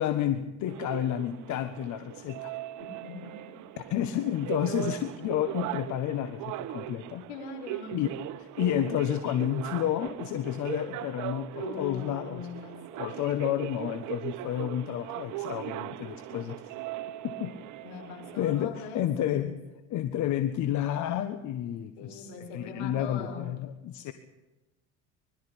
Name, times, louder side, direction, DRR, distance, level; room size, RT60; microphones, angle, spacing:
voice 1, 0.0-2.6 3.8-7.3 7.9-8.1 8.4-12.5 13.0-16.6 17.4-17.5 18.4-19.5 19.9-24.1, left 11 dB, 55° left, 11 dB, 1.4 m, -30 dB
sound 1, 0.7-18.7, right 15 dB, 60° right, 1.2 m, -39 dB
voice 2, 3.0-3.6 7.3-8.0 11.6-13.2 17.8-19.5 22.0-23.5, left 4 dB, 80° left, 5 dB, 5.0 m, -41 dB
21.0 x 13.0 x 9.9 m, 1.1 s
supercardioid pair, 95°, 34 cm